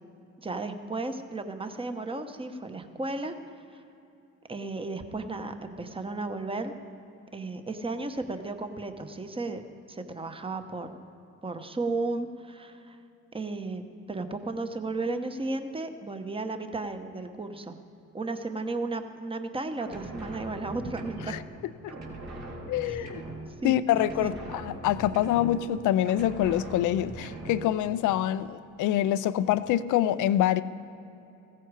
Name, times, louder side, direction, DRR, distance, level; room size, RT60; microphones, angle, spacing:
voice 1, 0.4-3.4 3.7-3.8 4.5-6.7 7.3-9.6 9.9-10.9 11.4-13.0 13.3-17.8 18.1-21.4 22.8-23.0 23.6-24.3, right 3 dB, 20° right, 7 dB, 1.0 m, -34 dB
sound 1, 19.8-21.6 21.9-23.7 24.0-25.8 26.1-27.7, right 2 dB, 65° right, 2.7 m, -41 dB
voice 2, 22.7-23.2 23.6-30.6, left 12 dB, 85° left, 14 dB, 0.5 m, -26 dB
15.5 x 14.5 x 4.8 m, 2.8 s
cardioid pair, 90°, 30 cm